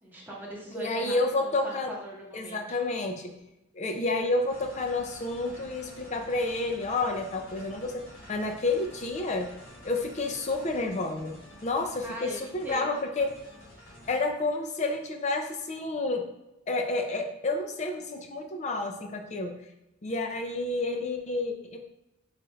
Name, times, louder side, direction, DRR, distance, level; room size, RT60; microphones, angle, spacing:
voice 1, 0.0-2.9 12.0-12.9, right 1 dB, 10° right, -4 dB, 1.0 m, -41 dB
voice 2, 0.7-1.9 2.3-3.3 3.7-8.0 8.3-9.5 9.8-13.3 14.1-16.2 16.7-19.6 20.0-21.8, left 2 dB, 35° left, 4 dB, 0.5 m, -30 dB
sound 1, 4.5-14.3, equal, 75° left, 1.4 m, -49 dB
3.9 x 2.5 x 4.3 m, 0.93 s
head